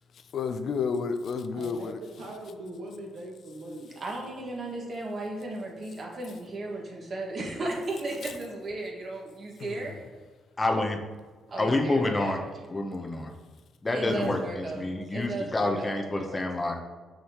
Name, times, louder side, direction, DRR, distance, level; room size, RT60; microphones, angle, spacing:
voice 1, 0.3-2.0 9.6-10.0 14.2-14.5, left 5 dB, 60° left, 9 dB, 0.5 m, -31 dB
voice 2, 1.5-3.9, right 1 dB, 80° right, -1 dB, 1.6 m, -41 dB
voice 3, 4.0-9.9 11.5-12.5 13.9-16.4, right 2 dB, 45° right, -2 dB, 1.8 m, -35 dB
voice 4, 10.6-11.0 11.6-12.4 12.7-13.3 13.8-16.8, left 2 dB, 20° left, 3 dB, 0.9 m, -28 dB
6.4 x 6.2 x 3.0 m, 1.4 s
cardioid pair, 90°, 0 cm